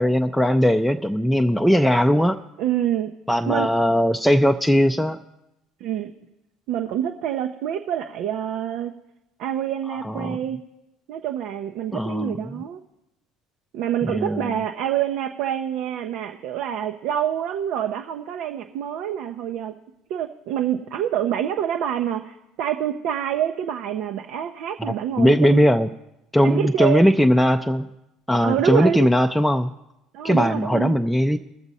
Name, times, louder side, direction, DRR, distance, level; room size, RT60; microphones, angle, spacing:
voice 1, 0.0-2.4 3.3-5.2 10.0-10.4 11.9-12.6 14.0-14.6 24.8-25.9 26.3-27.9 28.3-29.7 30.2-31.4, equal, ahead, 4 dB, 0.5 m, -19 dB
voice 2, 2.6-3.1 3.5-3.7 5.8-6.1 6.7-8.9 9.4-10.6 11.1-12.8 13.7-19.7 20.1-25.7 26.4-27.1 28.4-29.1 30.1-30.9, right 10 dB, 65° right, 4 dB, 0.6 m, -26 dB
20.5 x 7.0 x 4.1 m, 0.92 s
hypercardioid pair, 65°, 0 cm